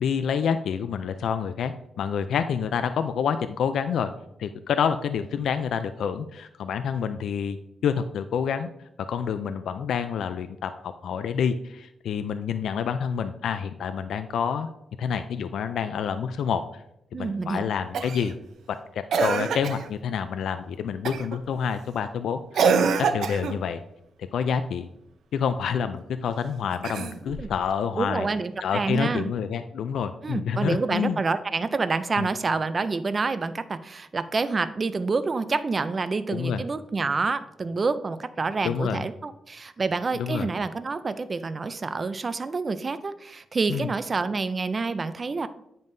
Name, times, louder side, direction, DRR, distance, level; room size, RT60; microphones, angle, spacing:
voice 1, 0.0-4.1 4.4-7.6 7.8-8.7 9.1-14.7 15.0-16.6 17.1-18.3 18.7-22.7 23.0-23.8 24.3-24.9 25.3-28.3 28.6-31.2 32.2-32.3 36.3-36.6 38.6-39.0 40.2-40.5 43.7-43.9, left 7 dB, 75° left, 9 dB, 0.3 m, -28 dB
voice 2, 17.1-17.6 27.4-27.5 28.0-29.3 30.2-45.5, right 4 dB, 30° right, 12 dB, 0.3 m, -28 dB
Cough, 17.9-18.3 19.1-19.9 21.1-21.4 22.5-23.6 26.7-27.5 29.0-29.1, right 5 dB, 75° right, 0.6 m, -25 dB
9.4 x 5.3 x 2.6 m, 0.80 s
wide cardioid pair, 170°, 0 cm